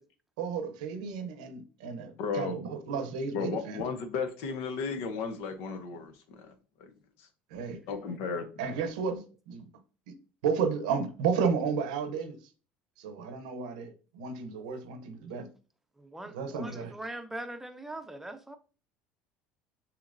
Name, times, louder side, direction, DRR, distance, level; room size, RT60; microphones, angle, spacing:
voice 1, 0.4-3.9 7.5-7.8 8.6-9.7 10.1-10.2 10.4-12.4 13.0-15.5 16.3-16.9, right 6 dB, 90° right, 0.8 m, -32 dB
voice 2, 2.2-2.6 3.3-6.1 6.4-6.5 7.9-8.5, left 5 dB, 70° left, 0.9 m, -34 dB
voice 3, 16.0-18.6, right 1 dB, 5° right, 0.7 m, -42 dB
6.8 x 2.9 x 2.6 m
supercardioid pair, 100°, 4 cm